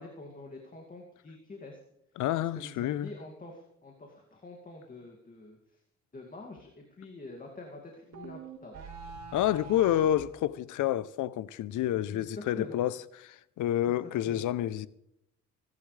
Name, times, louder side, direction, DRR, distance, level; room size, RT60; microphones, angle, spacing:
voice 1, 0.0-1.8 2.4-5.8 6.1-8.7 12.1-12.8 13.9-14.6, left 2 dB, 30° left, 2.4 m, -46 dB
voice 2, 2.2-3.1 9.3-13.0 13.3-14.9, left 12 dB, 80° left, 0.7 m, -29 dB
sound 1, 8.1-10.3, right 5 dB, 60° right, 2.3 m, -44 dB
26.5 x 11.0 x 3.3 m
cardioid pair, 90°, 30 cm